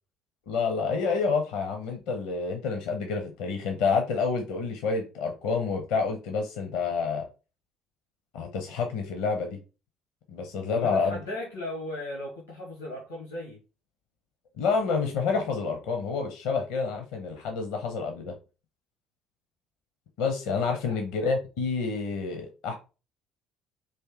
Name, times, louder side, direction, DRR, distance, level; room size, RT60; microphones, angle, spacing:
voice 1, 0.5-7.3 8.3-9.6 10.3-11.2 14.6-18.3 20.2-22.7, left 5 dB, 60° left, 4 dB, 0.7 m, -28 dB
voice 2, 10.7-13.6 20.5-21.0, left 1 dB, 85° left, -3 dB, 1.3 m, -37 dB
4.3 x 2.7 x 3.8 m, 0.32 s
figure-of-eight pair, 50°, 0 cm